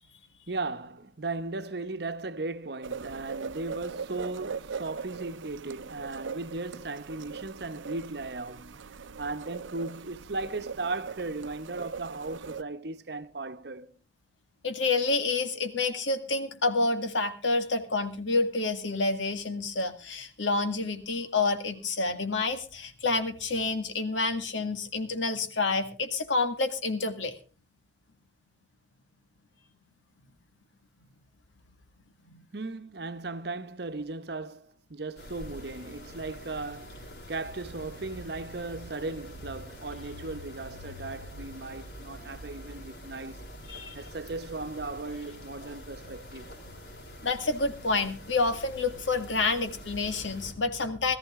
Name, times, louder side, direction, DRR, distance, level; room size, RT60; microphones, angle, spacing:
voice 1, 0.5-8.9 9.2-14.0 32.5-43.4 43.9-46.5, right 3 dB, 60° right, 0.9 m, -37 dB
sound 1, 2.8-12.6, right 5 dB, 90° right, 0.6 m, -40 dB
voice 2, 14.6-27.3 32.3-32.4 43.7-44.0 47.2-51.2, left 3 dB, 85° left, 2.0 m, -28 dB
sound 2, 35.2-50.5, equal, 65° left, 4.2 m, -45 dB
18.0 x 14.0 x 3.6 m
head